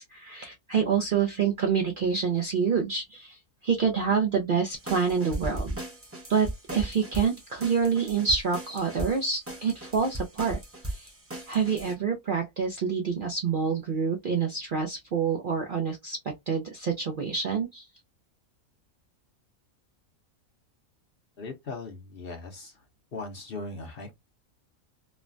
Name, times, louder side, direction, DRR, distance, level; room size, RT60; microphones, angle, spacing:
voice 1, 0.0-5.8 6.3-10.6 10.9-11.1 11.5-17.9, right 6 dB, 60° right, 0.5 m, -27 dB
sound 1, 4.8-11.9, right 1 dB, 15° right, 0.6 m, -37 dB
voice 2, 21.4-22.8 23.1-24.1, left 3 dB, 50° left, 0.7 m, -39 dB
3.1 x 2.1 x 2.5 m
omnidirectional pair, 1.5 m